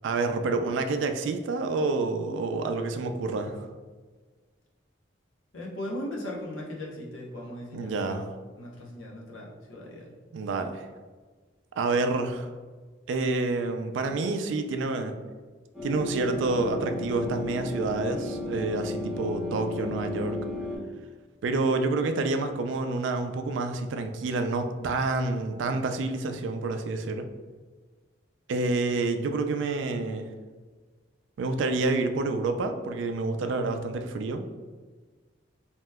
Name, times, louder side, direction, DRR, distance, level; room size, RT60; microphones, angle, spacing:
voice 1, 0.0-3.7 7.7-8.3 10.3-10.9 11.8-12.5 13.1-15.2 15.8-20.4 21.4-27.3 28.5-30.3 31.4-34.4, right 3 dB, 75° right, 7 dB, 0.3 m, -28 dB
voice 2, 5.5-8.3 8.6-10.2, left 1 dB, 90° left, -2 dB, 0.8 m, -38 dB
sound 1, 15.7-20.8, left 2 dB, ahead, 0.8 m, -34 dB
2.8 x 2.2 x 3.3 m, 1.4 s
head